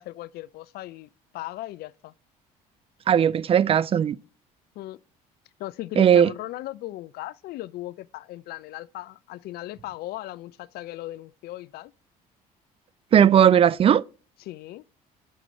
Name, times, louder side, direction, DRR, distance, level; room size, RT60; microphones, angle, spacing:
voice 1, 0.0-2.1 4.8-5.0 5.6-11.9 14.5-14.8, left 16 dB, 55° left, 0.4 m, -37 dB
voice 2, 3.1-4.2 6.0-6.3 13.1-14.0, right 9 dB, 30° right, 0.4 m, -17 dB
6.1 x 3.9 x 5.6 m
hypercardioid pair, 60°, 19 cm